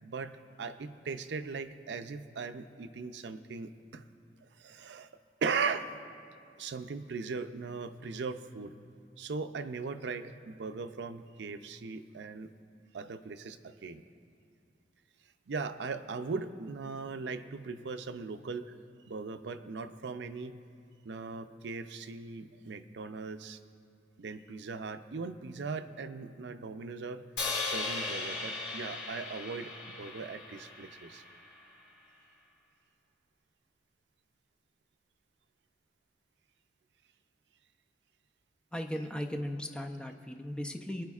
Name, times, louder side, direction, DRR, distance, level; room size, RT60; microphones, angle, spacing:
voice 1, 0.0-4.1 4.4-5.1 5.4-6.0 6.6-8.7 9.2-12.5 12.9-14.0 15.5-18.8 19.1-20.6 21.0-23.6 24.2-27.2 27.6-31.2, right 4 dB, 75° right, 10 dB, 0.5 m, -39 dB
Crash cymbal, 27.4-31.6, left 3 dB, 70° left, 2.8 m, -37 dB
voice 2, 38.7-41.0, equal, 5° left, 4 dB, 0.4 m, -37 dB
26.5 x 9.7 x 2.4 m, 2.5 s
head